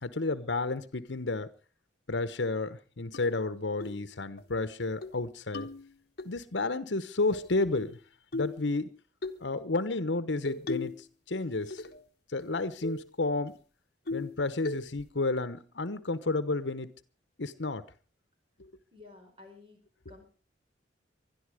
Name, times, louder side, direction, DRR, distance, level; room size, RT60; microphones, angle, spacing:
voice 1, 0.0-1.5 2.1-5.7 6.2-8.0 8.3-8.9 9.4-11.0 11.3-11.8 12.3-13.5 14.1-16.9 17.4-17.8, left 3 dB, 80° left, 13 dB, 1.1 m, -31 dB
sound 1, 3.1-3.2 3.8-4.0 4.4-4.5 4.8-5.2 5.5-6.3 7.3-8.0 8.3-8.6 9.2-9.4 10.5-11.0 11.4-12.0 12.4-12.5 12.8-13.1 13.5-13.6 14.1-14.4 14.7-15.1, left 3 dB, 55° left, 1.1 m, -38 dB
voice 2, 18.9-19.8 20.1-20.2, left 3 dB, 30° right, 4 dB, 4.7 m, -52 dB
20.5 x 12.0 x 5.0 m, 0.37 s
head